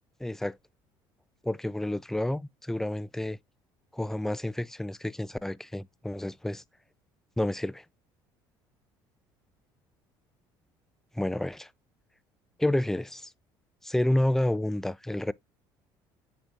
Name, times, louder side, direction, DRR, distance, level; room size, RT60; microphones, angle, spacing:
voice 1, 0.2-0.6 1.4-3.4 3.9-6.6 7.4-7.8 11.1-11.7 12.6-13.3 13.8-15.3, left 1 dB, 5° left, 0.4 m, -29 dB
7.8 x 4.4 x 3.7 m
supercardioid pair, 75°, 11 cm